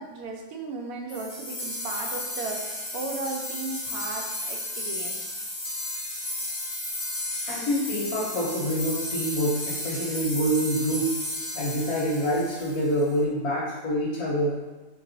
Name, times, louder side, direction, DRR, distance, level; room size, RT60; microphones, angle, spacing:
voice 1, 0.0-5.3, right 3 dB, 75° right, 1 dB, 1.0 m, -35 dB
sound 1, 1.1-13.1, left 1 dB, 40° left, 0.8 m, -33 dB
voice 2, 7.5-11.2 11.5-14.6, equal, 85° left, -6 dB, 1.2 m, -26 dB
3.1 x 2.9 x 3.8 m, 1.2 s
omnidirectional pair, 1.6 m